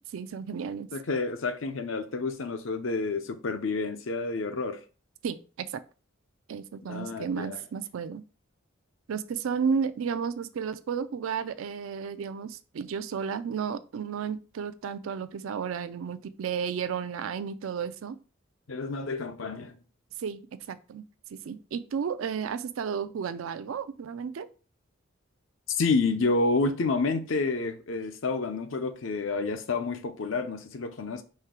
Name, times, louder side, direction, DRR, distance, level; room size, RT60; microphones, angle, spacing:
voice 1, 0.1-0.9 5.2-5.7 6.5-8.2 9.1-18.2 20.2-20.4 20.7-21.0 21.3-24.5, right 6 dB, 85° right, 0.4 m, -33 dB
voice 2, 0.9-4.8 6.9-7.6 18.7-19.7 25.7-31.2, left 3 dB, 75° left, 0.6 m, -29 dB
4.4 x 3.2 x 3.6 m
head